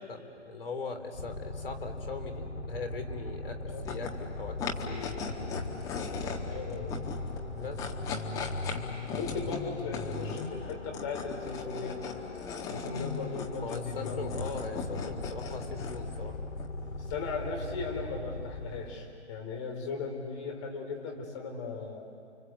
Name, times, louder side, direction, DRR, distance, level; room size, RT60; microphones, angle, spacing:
voice 1, 0.1-5.4 7.6-7.8 13.6-16.4, left 4 dB, 55° left, 6 dB, 3.4 m, -40 dB
sound 1, 1.1-19.2, left 2 dB, 85° left, 2.0 m, -39 dB
sound 2, 3.7-19.1, left 5 dB, 10° left, 1.3 m, -40 dB
voice 2, 6.5-6.9 9.1-12.0 12.7-14.9 15.2-15.6 16.9-22.1, left 4 dB, 25° left, 2 dB, 4.1 m, -38 dB
29.5 x 24.5 x 8.0 m, 2.3 s
figure-of-eight pair, 140°, 35 cm